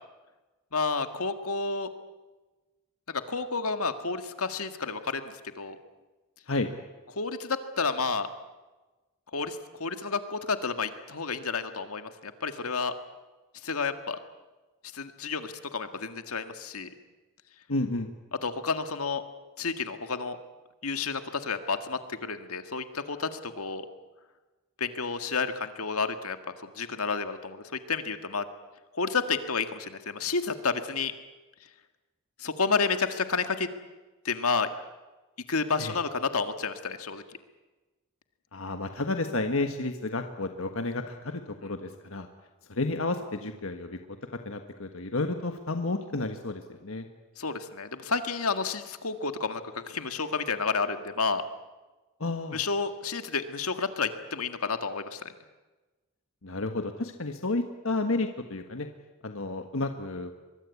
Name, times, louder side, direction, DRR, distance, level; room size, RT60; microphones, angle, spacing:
voice 1, 0.7-1.9 3.1-5.8 7.1-8.3 9.3-12.9 13.6-14.2 14.9-16.9 18.4-19.2 19.6-20.4 20.8-23.9 24.8-26.4 26.6-28.5 28.9-31.1 32.4-33.7 34.2-34.7 35.5-37.2 41.6-41.7 47.4-51.4 52.5-55.3, left 4 dB, 85° left, 8 dB, 1.9 m, -30 dB
voice 2, 17.7-18.1 35.8-35.9 38.5-42.3 42.7-44.2 44.4-47.1 52.2-52.6 56.4-58.9 59.2-60.4, left 2 dB, 65° left, 6 dB, 1.4 m, -31 dB
24.0 x 22.0 x 8.4 m, 1.2 s
head